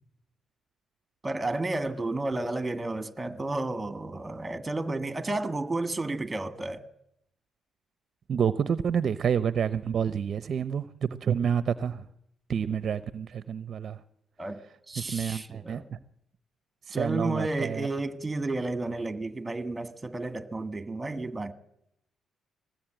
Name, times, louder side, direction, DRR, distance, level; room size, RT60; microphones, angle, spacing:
voice 1, 1.2-6.9 14.4-14.6 14.9-15.8 16.9-21.5, right 2 dB, 20° right, 1.7 m, -32 dB
voice 2, 8.3-12.0 12.5-14.0 15.0-16.0 16.9-17.9, right 7 dB, 55° right, 0.7 m, -29 dB
21.0 x 16.0 x 9.0 m
cardioid pair, 90°, 0 cm